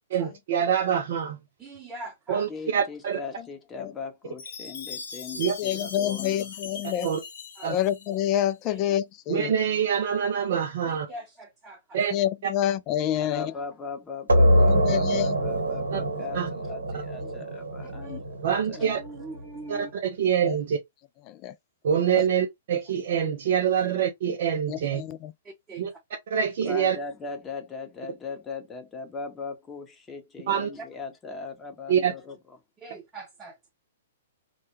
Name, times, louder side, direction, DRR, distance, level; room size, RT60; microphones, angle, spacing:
voice 1, 0.1-1.4 2.3-3.2 5.4-5.5 7.0-7.2 7.6-7.8 9.3-11.1 11.9-12.1 12.4-12.5 15.9-16.0 16.3-16.5 18.4-19.0 19.7-20.8 21.8-25.0 25.8-25.9 26.3-27.0 30.5-30.7 31.9-32.1, right 8 dB, 55° right, 0.4 m, -25 dB
voice 2, 1.6-2.5 6.9-7.0 7.6-7.7 8.6-8.8 10.8-12.0 17.8-18.2 18.8-19.9 25.4-26.0 30.8-30.9 32.8-33.7, right 2 dB, 20° right, 0.8 m, -43 dB
voice 3, 2.5-6.5 13.2-19.0 26.7-32.6, left 4 dB, 15° left, 0.8 m, -39 dB
Chime, 4.4-8.5, left 5 dB, 65° left, 0.7 m, -40 dB
voice 4, 5.6-7.1 7.7-9.5 12.1-13.5 14.7-15.4 20.4-20.6 21.3-21.5 24.7-25.3, left 11 dB, 35° left, 0.3 m, -27 dB
sound 1, 14.3-19.6, equal, 85° right, 0.8 m, -24 dB
2.2 x 2.2 x 3.0 m
figure-of-eight pair, 115°, 0 cm